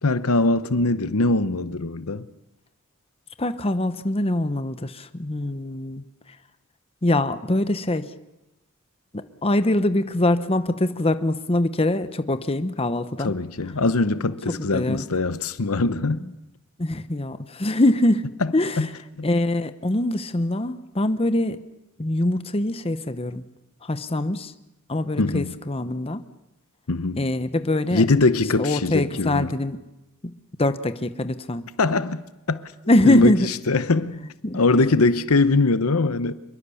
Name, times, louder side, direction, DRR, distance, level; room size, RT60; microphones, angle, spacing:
voice 1, 0.0-2.3 13.2-16.2 18.8-18.9 19.2-19.3 25.2-25.5 26.9-27.3 27.9-29.5 31.8-32.2 32.5-32.7 33.0-33.3 33.7-36.3, left 3 dB, 75° left, 0.9 m, -22 dB
voice 2, 3.4-6.0 7.0-8.1 9.1-13.3 14.5-15.1 16.8-18.9 19.2-21.7 22.0-23.4 23.8-24.5 24.9-26.2 27.2-28.1 28.6-29.8 30.2-30.3 30.6-31.6 32.9-33.5 34.4-34.9, left 1 dB, 25° left, 0.9 m, -23 dB
26.0 x 22.5 x 7.1 m
head